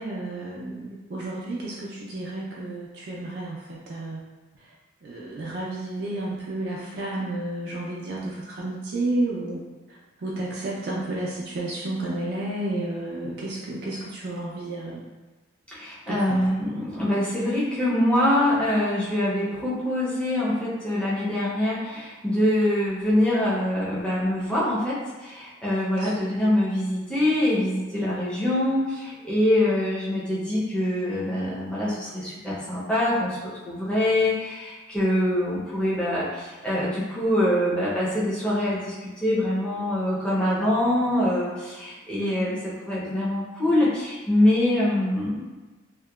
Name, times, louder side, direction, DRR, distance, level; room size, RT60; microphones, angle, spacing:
voice 1, 0.0-4.2 5.0-9.6 10.2-15.0 16.1-16.4 26.0-26.4 42.1-42.6, right 2 dB, 55° right, -5 dB, 0.3 m, -31 dB
voice 2, 15.7-33.4 33.6-45.4, left 1 dB, 5° left, -9 dB, 0.5 m, -24 dB
2.8 x 2.1 x 2.2 m, 1.2 s
head